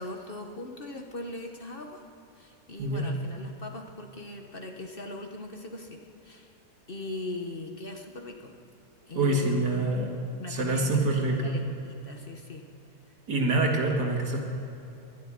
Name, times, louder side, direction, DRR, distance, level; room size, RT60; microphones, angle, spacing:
voice 1, 0.0-2.0 2.4-6.5 6.9-8.5 9.1-9.8 10.4-12.6, left 2 dB, 40° left, 3 dB, 1.2 m, -40 dB
voice 2, 9.2-10.1 10.5-11.6 13.3-14.4, right 2 dB, 85° right, 1 dB, 2.5 m, -26 dB
12.0 x 11.5 x 9.9 m, 2.9 s
omnidirectional pair, 1.7 m